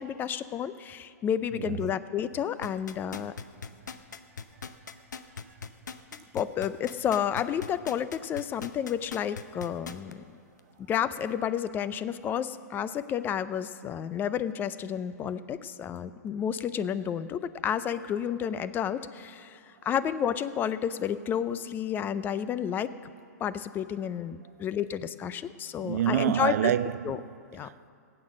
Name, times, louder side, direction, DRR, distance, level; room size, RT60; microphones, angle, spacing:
voice 1, 0.0-3.3 6.3-10.2 10.8-22.9 23.4-26.7 27.0-27.2 27.5-27.7, left 9 dB, 20° left, 0.5 m, -31 dB
voice 2, 1.5-1.8 5.5-5.6 25.8-27.9, right 11 dB, 60° right, 0.4 m, -29 dB
sound 1, 2.6-10.1 10.6-10.7, left 6 dB, 90° left, 0.8 m, -40 dB
17.0 x 9.0 x 6.4 m
hypercardioid pair, 130°, 9 cm